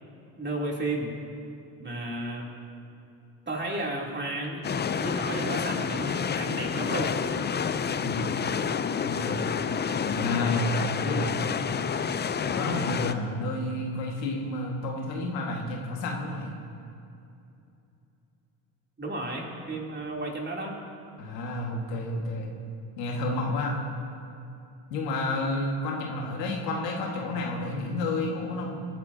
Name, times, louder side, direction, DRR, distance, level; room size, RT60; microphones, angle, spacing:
voice 1, 0.4-1.1 1.8-2.5 3.5-4.6 4.9-7.1 19.0-20.8, right 2 dB, 20° right, -2 dB, 3.2 m, -33 dB
sound 1, 4.6-13.1, left 6 dB, 20° left, 0.5 m, -29 dB
voice 2, 8.0-8.3 9.0-9.4 10.0-11.4 12.4-16.5 21.2-22.5 23.0-23.7 24.9-28.9, left 2 dB, 90° left, -1 dB, 1.9 m, -30 dB
23.5 x 9.6 x 2.8 m, 2.7 s
hypercardioid pair, 65°, 48 cm